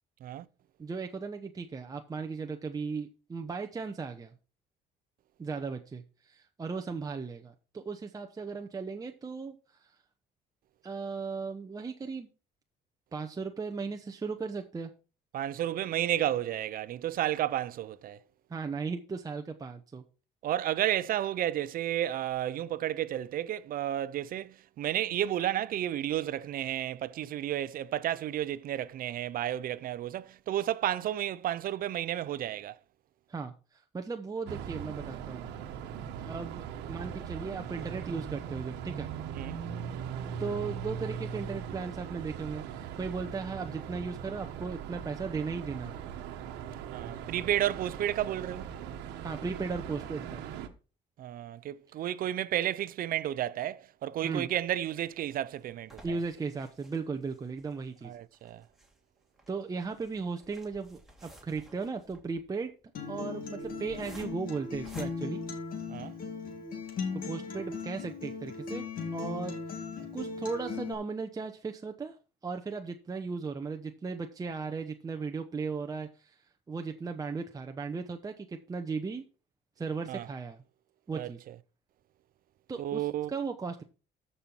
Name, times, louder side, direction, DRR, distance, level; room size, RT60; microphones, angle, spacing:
voice 1, 0.8-4.3 5.4-9.6 9.8-9.9 10.8-12.3 13.1-14.9 18.5-20.0 33.3-35.5 36.2-39.1 40.4-46.0 49.2-50.4 54.2-54.5 56.0-58.1 59.5-62.7 63.1-65.4 67.1-68.8 69.1-69.9 70.1-72.2 72.4-76.4 76.7-79.2 79.8-80.6 81.1-81.4 82.7-83.8, right 4 dB, 20° right, 0.9 m, -36 dB
voice 2, 15.3-18.2 20.4-32.8 39.4-39.6 46.9-48.7 51.2-56.2 58.0-58.6 65.9-66.1 80.1-80.3 81.1-81.5 82.8-83.3, right 12 dB, 60° right, 0.7 m, -32 dB
sound 1, 34.5-50.7, right 8 dB, 90° right, 1.2 m, -40 dB
sound 2, 55.1-66.3 66.8-66.9 67.2-67.3 67.7-67.8, right 1 dB, ahead, 2.6 m, -55 dB
Acoustic guitar, 62.9-70.9, left 5 dB, 60° left, 2.3 m, -38 dB
13.5 x 5.6 x 4.5 m
cardioid pair, 110°, 17 cm